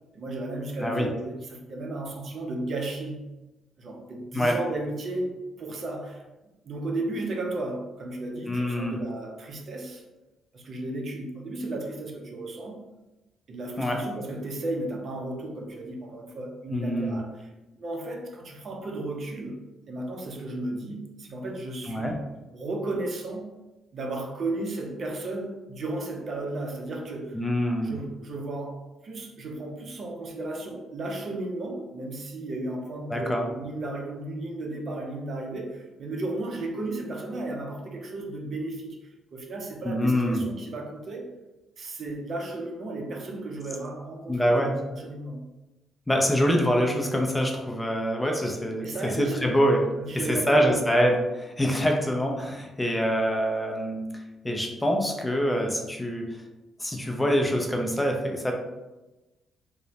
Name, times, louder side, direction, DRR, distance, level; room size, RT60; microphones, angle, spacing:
voice 1, 0.1-3.2 3.8-6.2 6.6-10.0 10.5-12.8 13.5-17.5 17.8-19.6 19.9-22.2 22.5-23.5 23.9-27.4 27.8-39.0 39.3-41.3 41.8-45.4 48.8-49.5 50.0-50.8, right 2 dB, 50° right, 1 dB, 0.5 m, -34 dB
voice 2, 8.5-9.0 13.8-14.0 16.7-17.2 21.9-22.2 27.3-27.9 33.1-33.5 39.8-40.4 44.3-44.7 46.1-49.9 50.1-54.0 54.4-56.4 56.8-58.6, equal, 15° left, 2 dB, 0.4 m, -25 dB
2.9 x 2.0 x 2.7 m, 1.1 s
cardioid pair, 90°, 0 cm